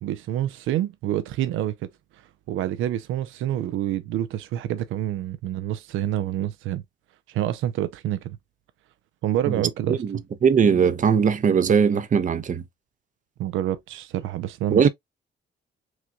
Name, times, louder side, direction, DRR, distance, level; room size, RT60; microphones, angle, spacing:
voice 1, 0.0-6.8 7.3-8.4 9.2-10.0 13.4-14.9, right 12 dB, 85° right, 0.5 m, -27 dB
voice 2, 9.5-12.6 14.7-14.9, right 6 dB, 40° right, 0.6 m, -20 dB
6.0 x 2.3 x 2.6 m
cardioid pair, 90°, 20 cm